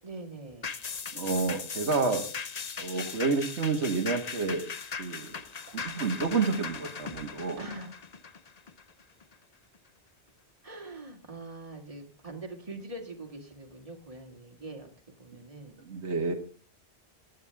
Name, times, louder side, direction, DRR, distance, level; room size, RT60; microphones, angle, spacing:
voice 1, 0.0-0.8 7.6-8.0 10.6-14.9 15.2-15.8, right 2 dB, 30° right, 3 dB, 2.3 m, -43 dB
sound 1, 0.6-9.3 9.8-9.9, left 5 dB, 40° left, 0.9 m, -39 dB
voice 2, 1.1-2.2 2.8-4.7 5.0-5.3 5.7-7.6 15.9-16.3, right 4 dB, 85° right, 5 dB, 1.9 m, -29 dB
16.0 x 9.8 x 3.5 m, 0.41 s
omnidirectional pair, 1.1 m